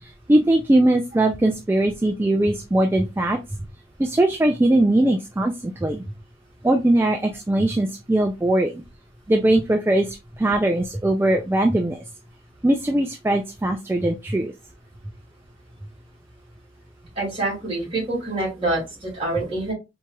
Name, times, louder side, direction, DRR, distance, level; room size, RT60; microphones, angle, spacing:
voice 1, 0.0-3.4 4.0-6.0 6.6-8.8 9.3-10.1 10.4-12.0 12.6-14.5, right 1 dB, 10° right, 4 dB, 0.3 m, -20 dB
voice 2, 17.2-19.7, right 2 dB, 30° right, -5 dB, 2.3 m, -26 dB
4.5 x 2.9 x 2.3 m, 0.25 s
head